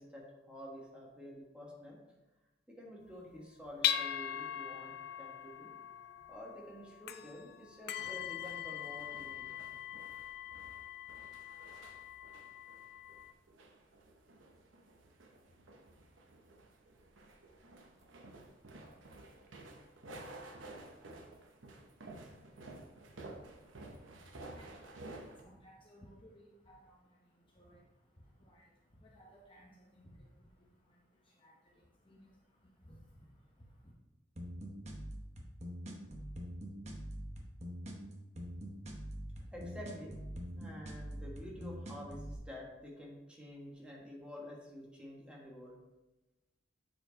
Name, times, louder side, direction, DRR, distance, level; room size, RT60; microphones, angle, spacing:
voice 1, 0.0-2.0 2.7-5.7 6.3-9.4 39.5-40.1 40.5-45.8, left 1 dB, 5° right, -3 dB, 1.4 m, -49 dB
sound 1, 3.1-13.3, left 10 dB, 55° left, 0.4 m, -41 dB
sound 2, 8.0-25.4, right 2 dB, 75° right, 0.9 m, -53 dB
voice 2, 23.0-33.9, equal, 25° left, -2 dB, 0.8 m, -61 dB
sound 3, 34.4-42.4, equal, 35° right, 0.9 m, -44 dB
7.8 x 4.5 x 4.0 m, 1.0 s
head